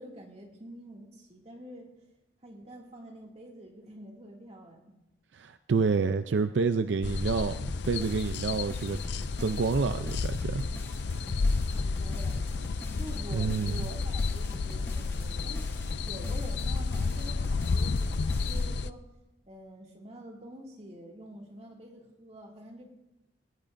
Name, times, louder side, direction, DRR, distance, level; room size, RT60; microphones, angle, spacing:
voice 1, 0.0-1.9 2.4-5.0 11.6-15.7 16.0-19.1 19.4-22.9, equal, 35° right, 0 dB, 2.3 m, -47 dB
voice 2, 5.3-9.0 9.4-10.6 13.3-13.8, right 4 dB, 75° right, 10 dB, 0.4 m, -28 dB
sound 1, 7.0-18.9, left 4 dB, 65° left, 0.5 m, -31 dB
sound 2, 7.7-18.6, left 1 dB, 15° left, 1.2 m, -47 dB
17.5 x 17.5 x 2.6 m, 0.93 s
head